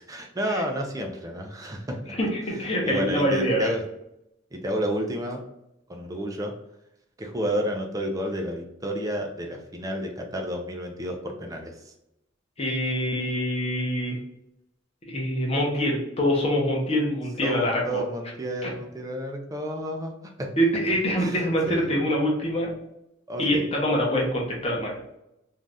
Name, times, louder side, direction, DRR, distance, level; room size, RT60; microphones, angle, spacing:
voice 1, 0.0-2.1 2.5-3.8 4.5-5.4 5.9-6.5 7.2-11.9 17.4-20.5 21.2-21.9 23.3-23.7, equal, 15° right, 2 dB, 0.4 m, -31 dB
voice 2, 2.2-3.7 12.6-14.2 15.1-17.8 18.6-18.7 20.6-22.7 23.4-25.0, equal, 30° left, -2 dB, 0.8 m, -25 dB
2.6 x 2.3 x 3.3 m, 0.83 s
head